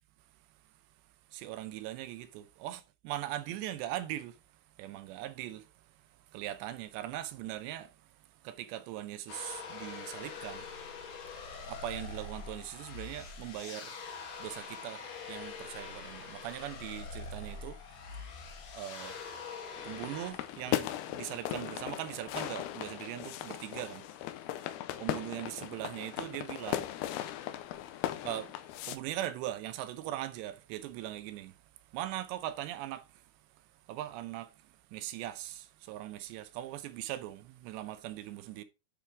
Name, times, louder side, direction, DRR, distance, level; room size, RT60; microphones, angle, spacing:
voice 1, 1.3-4.4 4.8-5.7 6.3-7.9 8.4-10.7 11.7-13.9 14.4-15.0 15.3-17.8 18.7-19.2 19.8-24.0 25.0-26.9 28.2-28.5 28.9-31.5 31.9-33.0 33.9-34.5 34.9-38.6, right 13 dB, 80° right, 2.7 m, -40 dB
sound 1, 9.3-20.3, left 4 dB, 65° left, 3.4 m, -44 dB
sound 2, 19.8-29.0, left 13 dB, 85° left, 2.4 m, -38 dB
10.0 x 4.3 x 4.6 m
omnidirectional pair, 5.4 m